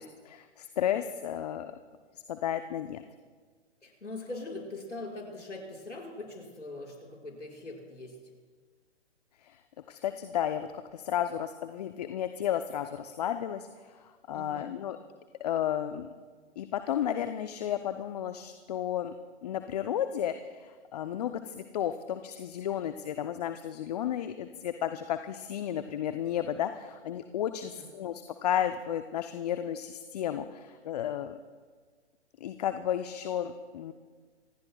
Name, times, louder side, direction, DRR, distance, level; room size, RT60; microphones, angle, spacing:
voice 1, 0.0-1.7 2.3-3.0 9.4-9.6 9.9-15.0 15.4-16.1 16.6-19.1 19.4-31.4 32.4-33.9, left 10 dB, 35° left, 9 dB, 0.6 m, -33 dB
voice 2, 3.8-8.2 14.3-14.7 27.6-27.9, left 2 dB, 90° left, -2 dB, 5.8 m, -42 dB
26.5 x 17.5 x 2.3 m, 1.5 s
figure-of-eight pair, 135°, 35 cm